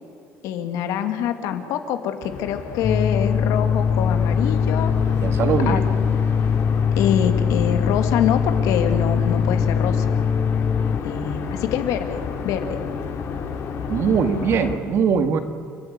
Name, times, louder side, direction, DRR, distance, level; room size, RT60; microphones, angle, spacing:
voice 1, 0.4-4.9 5.7-5.8 7.0-10.2 11.0-12.2 12.4-12.8, left 9 dB, 75° left, 7 dB, 2.1 m, -25 dB
sound 1, 2.2-14.8, left 6 dB, 55° left, 3.0 m, -30 dB
sound 2, 2.8-11.0, left 6 dB, 30° left, 0.6 m, -21 dB
voice 2, 5.2-5.8 13.9-15.4, right 6 dB, 50° right, 8 dB, 1.9 m, -21 dB
29.5 x 12.5 x 9.6 m, 2.5 s
cardioid pair, 140°, 6 cm